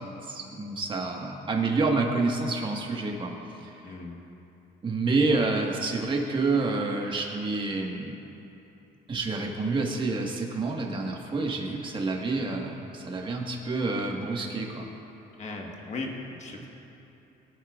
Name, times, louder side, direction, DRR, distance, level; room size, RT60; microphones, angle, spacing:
voice 1, 0.2-3.3 3.6-3.9 4.8-8.1 9.1-14.9, right 3 dB, 30° right, 0 dB, 1.5 m, -28 dB
voice 2, 3.8-4.2 5.3-5.4 15.4-16.7, left 3 dB, 40° left, 0 dB, 1.5 m, -37 dB
20.0 x 8.7 x 2.5 m, 3.0 s
cardioid pair, 110°, 17 cm